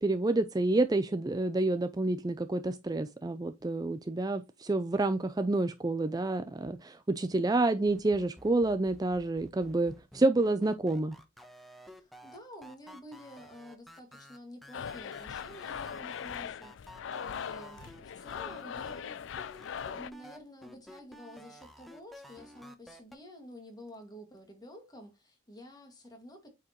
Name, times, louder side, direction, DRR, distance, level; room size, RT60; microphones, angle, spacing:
voice 1, 0.0-11.2, right 2 dB, 20° right, 0.4 m, -29 dB
voice 2, 7.6-8.2 11.9-19.6 19.9-26.5, equal, 20° left, 2.2 m, -50 dB
sound 1, 7.9-18.0 18.4-19.0 19.4-23.2, equal, ahead, 1.0 m, -52 dB
sound 2, 14.7-20.1, left 7 dB, 70° left, 0.4 m, -40 dB
8.6 x 4.6 x 3.1 m
head